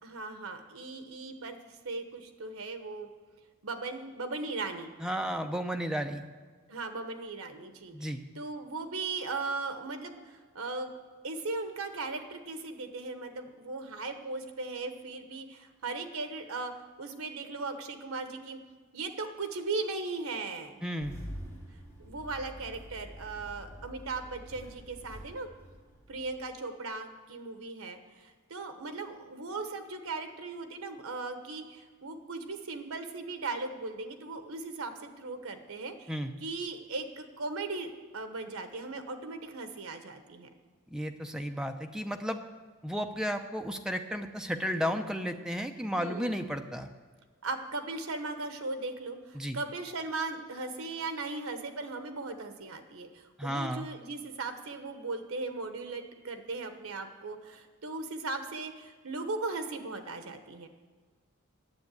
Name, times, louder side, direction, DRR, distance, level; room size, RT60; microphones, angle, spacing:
voice 1, 0.0-3.1 3.6-4.9 6.7-10.9 11.2-18.6 18.9-20.8 22.0-25.5 26.1-40.5 46.0-46.4 47.4-60.7, right 3 dB, 75° right, 7 dB, 1.2 m, -38 dB
voice 2, 5.0-6.3 7.9-8.2 20.8-21.1 36.1-36.3 40.9-42.4 42.8-46.9 49.3-49.6 53.4-53.9, equal, 5° right, 5 dB, 0.6 m, -33 dB
Engine starting, 21.0-26.5, equal, 10° left, 2.9 m, -46 dB
9.7 x 7.5 x 9.3 m, 1.5 s
head